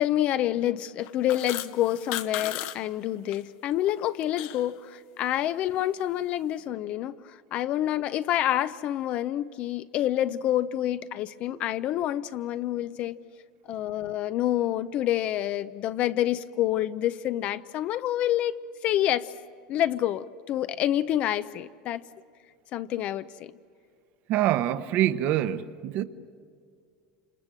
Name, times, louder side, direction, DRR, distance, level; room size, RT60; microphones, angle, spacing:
voice 1, 0.0-13.2 13.7-18.6 18.8-19.3 19.7-22.0 22.7-23.5, left 12 dB, 45° left, 0.6 m, -28 dB
sound 1, 1.0-3.4 3.8-4.7, left 14 dB, 65° left, 1.1 m, -35 dB
voice 2, 24.3-26.0, right 12 dB, 50° right, 1.1 m, -25 dB
28.5 x 27.5 x 7.6 m
supercardioid pair, 145°, 3 cm